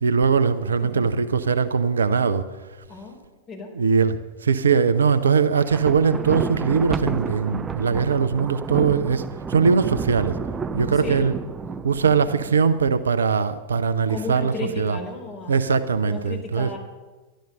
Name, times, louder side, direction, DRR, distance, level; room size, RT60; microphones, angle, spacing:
voice 1, 0.0-2.5 3.7-10.4 10.7-11.3 11.8-15.0 15.5-16.7, right 5 dB, 70° right, 12 dB, 0.7 m, -21 dB
Thunder, 5.6-12.8, right 5 dB, 20° right, 0.6 m, -31 dB
voice 2, 14.0-15.5 16.1-16.8, left 3 dB, 35° left, 0 dB, 4.2 m, -34 dB
12.5 x 11.5 x 6.7 m, 1.2 s
figure-of-eight pair, 90°, 0 cm